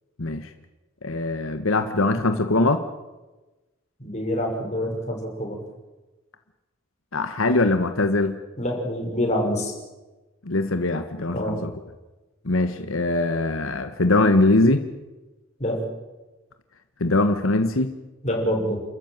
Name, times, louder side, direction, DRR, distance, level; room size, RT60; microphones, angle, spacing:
voice 1, 0.2-0.5 1.0-2.8 7.1-8.4 10.4-11.7 12.4-14.9 17.0-17.9, left 2 dB, 90° left, 8 dB, 1.4 m, -22 dB
voice 2, 4.0-5.6 8.6-9.7 11.3-11.6 15.6-15.9 18.2-18.8, equal, 35° left, 1 dB, 6.0 m, -26 dB
29.0 x 14.0 x 9.1 m, 1.1 s
head